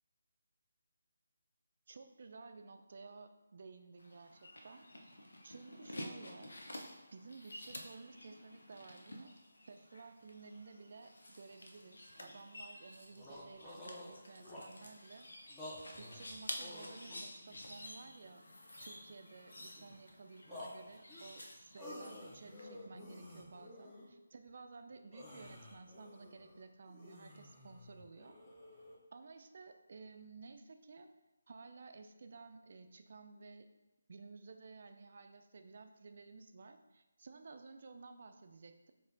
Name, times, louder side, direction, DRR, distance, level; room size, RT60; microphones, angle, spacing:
voice 1, 1.9-4.9 5.4-6.5 7.1-9.3 9.7-15.3 16.0-18.5 18.8-28.4 29.1-31.1 31.5-33.7 34.1-38.9, right 4 dB, 50° right, 7 dB, 0.3 m, -54 dB
sound 1, 4.0-22.6, left 1 dB, 85° left, 0.6 m, -51 dB
sound 2, 11.1-11.2 11.5-11.6 12.1-12.4 12.8-12.9 13.1-14.9 15.5-17.6 18.2-19.0 19.4-20.1 20.5-24.1 24.5-24.6 24.9-29.0, left 1 dB, 10° left, 0.6 m, -52 dB
4.2 x 2.7 x 3.9 m, 1.1 s
figure-of-eight pair, 170°, 0 cm